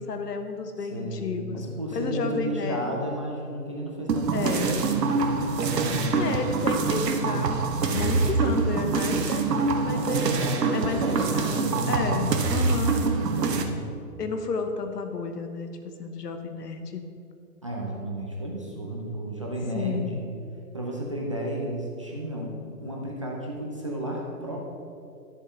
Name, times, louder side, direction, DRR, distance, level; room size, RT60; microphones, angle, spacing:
voice 1, 0.0-3.0 4.3-4.8 6.1-10.4 10.7-13.0 14.2-15.7 16.0-17.0 19.6-20.2, left 4 dB, 75° left, 7 dB, 1.2 m, -32 dB
voice 2, 0.8-5.1 5.5-6.6 9.9-12.4 13.2-13.9 17.6-20.2 20.7-22.5 22.8-24.6, equal, 20° right, -3 dB, 0.5 m, -33 dB
sound 1, 4.1-13.6, right 4 dB, 80° right, 1.2 m, -25 dB
11.0 x 6.9 x 4.1 m, 2.5 s
hypercardioid pair, 160°, 48 cm